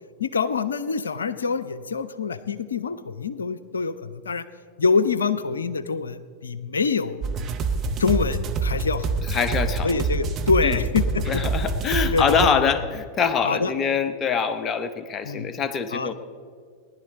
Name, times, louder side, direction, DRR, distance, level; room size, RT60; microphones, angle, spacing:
voice 1, 0.2-4.4 4.8-7.2 8.0-9.1 9.8-11.4 12.1-12.6 13.4-13.7 15.2-15.5 15.9-16.1, left 5 dB, 70° left, 15 dB, 0.6 m, -25 dB
sound 1, 7.2-12.5, right 4 dB, 30° right, 1.1 m, -26 dB
voice 2, 9.3-10.0 10.6-10.8 11.3-16.1, left 6 dB, 25° left, 11 dB, 0.8 m, -24 dB
19.5 x 11.0 x 4.0 m, 2.1 s
figure-of-eight pair, 90°, 0 cm